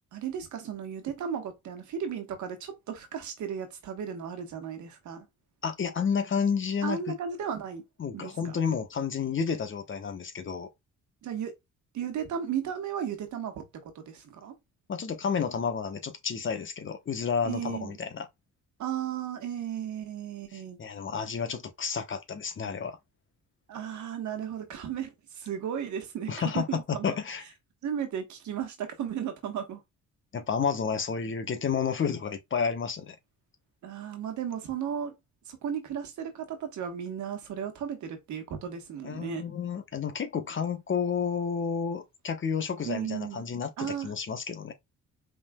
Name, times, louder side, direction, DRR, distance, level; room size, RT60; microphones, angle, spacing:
voice 1, 0.1-5.3 6.8-7.8 8.1-8.6 11.2-11.5 11.9-14.6 17.4-18.0 18.8-20.8 23.7-27.2 27.8-29.8 33.8-35.1 35.4-39.4 42.8-43.4 43.8-44.1, right 8 dB, 75° right, 1.4 m, -35 dB
voice 2, 5.6-7.1 8.0-10.7 14.9-18.3 20.8-23.0 26.3-27.4 30.3-33.1 39.0-44.7, left 6 dB, 40° left, 1.1 m, -31 dB
4.8 x 3.8 x 2.3 m
cardioid pair, 90°, 30 cm